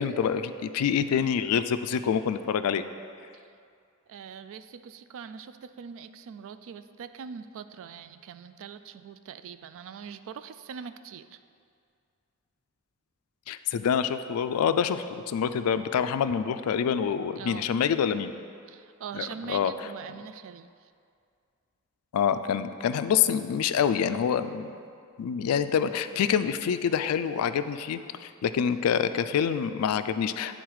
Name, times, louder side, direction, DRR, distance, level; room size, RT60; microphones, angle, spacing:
voice 1, 0.0-2.8 13.5-18.3 19.1-19.7 22.1-24.7 25.2-30.6, left 7 dB, 75° left, 11 dB, 0.3 m, -26 dB
voice 2, 4.1-11.4 17.4-17.7 18.7-20.9, right 7 dB, 60° right, 12 dB, 0.3 m, -42 dB
9.3 x 3.9 x 4.7 m, 2.3 s
head